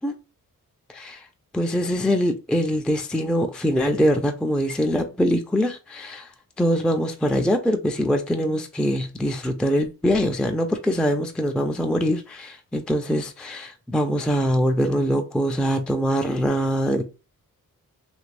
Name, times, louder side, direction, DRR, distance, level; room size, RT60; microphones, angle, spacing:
voice 1, 0.9-1.3 1.5-6.3 6.6-17.0, equal, 5° left, 0.4 m, -23 dB
3.3 x 2.9 x 2.5 m
cardioid pair, 75°, 35 cm